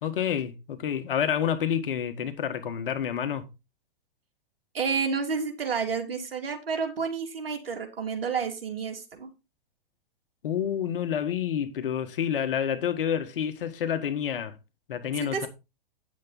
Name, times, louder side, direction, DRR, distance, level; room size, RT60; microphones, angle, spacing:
voice 1, 0.0-3.4 10.4-14.5 14.9-15.5, left 9 dB, 65° left, 1.7 m, -28 dB
voice 2, 4.7-9.3 15.1-15.5, right 5 dB, 75° right, 2.9 m, -30 dB
9.5 x 7.5 x 3.9 m
figure-of-eight pair, 110°, 29 cm